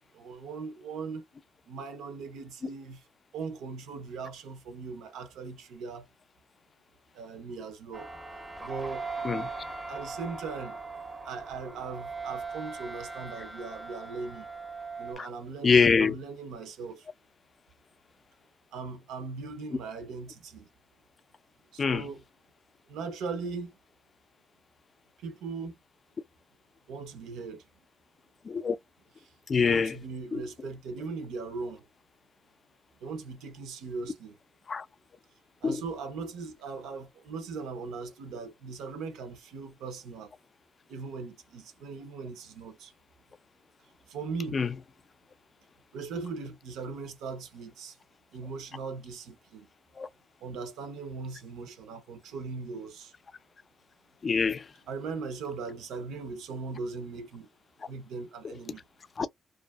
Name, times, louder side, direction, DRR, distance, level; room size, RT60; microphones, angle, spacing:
voice 1, 0.1-1.2 1.7-3.0 3.3-6.1 7.1-8.1 8.6-9.1 9.9-10.8 11.2-14.5 15.0-17.1 18.7-20.7 21.7-22.2 22.9-23.7 25.2-25.8 26.9-27.6 29.2-29.3 29.6-31.8 33.0-34.4 35.6-40.3 40.9-42.9 44.1-44.6 45.9-48.0 48.3-49.7 50.4-53.1 54.9-57.5 57.9-58.8, right 4 dB, 90° right, 0.6 m, -39 dB
sound 1, 7.9-15.1, right 4 dB, 15° right, 0.5 m, -39 dB
voice 2, 15.6-16.1 21.8-22.1 28.5-28.8 29.5-30.0 30.3-30.4 34.7-34.8 35.6-35.8 44.5-44.7 50.0-50.1 54.2-54.6 58.4-58.5 59.2-59.3, left 5 dB, 40° left, 0.3 m, -24 dB
2.5 x 2.4 x 2.3 m
cardioid pair, 90°, 0 cm